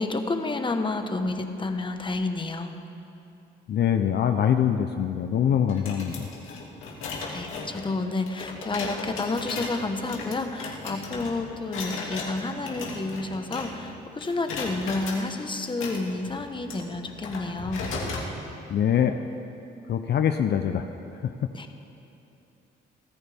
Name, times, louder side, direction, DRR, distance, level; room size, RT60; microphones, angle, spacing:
voice 1, 0.0-2.7 7.3-17.8 21.5-21.7, left 3 dB, 25° left, 6 dB, 1.3 m, -30 dB
voice 2, 3.7-6.3 18.7-19.3 19.9-20.9 21.1-21.5, left 9 dB, 60° left, 7 dB, 0.7 m, -24 dB
sound 1, 5.7-13.9 14.2-15.2 15.7-18.3, left 3 dB, 85° left, 2.4 m, -36 dB
24.0 x 14.0 x 3.5 m, 2.8 s
cardioid pair, 90°, 20 cm